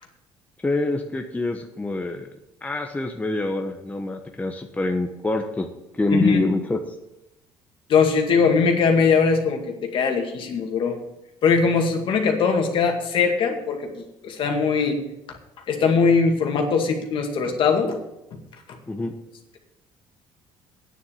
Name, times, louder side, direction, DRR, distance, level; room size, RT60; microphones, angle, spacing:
voice 1, 0.6-2.3 2.6-6.8 18.9-19.1, left 2 dB, 15° left, 4 dB, 1.1 m, -26 dB
voice 2, 6.1-6.4 7.9-11.0 11.4-15.0 15.7-18.0 18.3-18.4, left 5 dB, 55° left, 3 dB, 2.2 m, -21 dB
9.7 x 7.1 x 7.3 m, 0.88 s
supercardioid pair, 85°, 10 cm